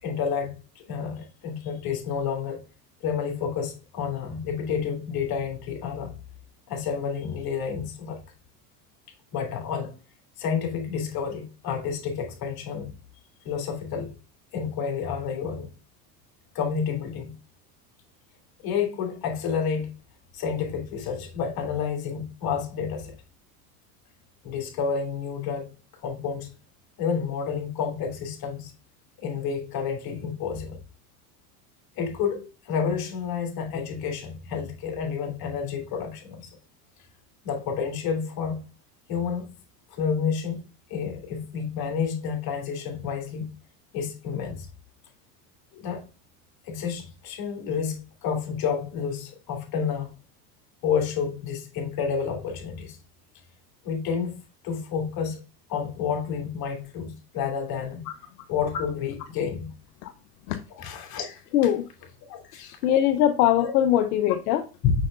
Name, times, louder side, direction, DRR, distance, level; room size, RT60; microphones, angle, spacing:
voice 1, 0.0-2.6 3.0-6.2 6.7-8.2 9.3-9.9 10.4-12.9 13.4-14.1 14.5-15.7 16.5-17.3 18.6-19.9 20.3-23.1 24.4-25.7 26.0-26.5 27.0-28.7 29.2-30.8 32.0-36.6 37.4-38.6 39.1-39.5 39.9-40.6 40.9-43.5 43.9-44.7 45.7-46.0 46.6-50.1 50.8-53.0 53.8-55.4 55.7-58.1 58.5-59.7 60.8-61.4 62.3-62.8 63.6-63.7 64.8-64.9, left 6 dB, 50° left, 3.0 m, -30 dB
voice 2, 61.5-61.8 62.8-64.6, left 11 dB, 75° left, 0.8 m, -21 dB
6.4 x 6.3 x 2.5 m
hypercardioid pair, 100°, 47 cm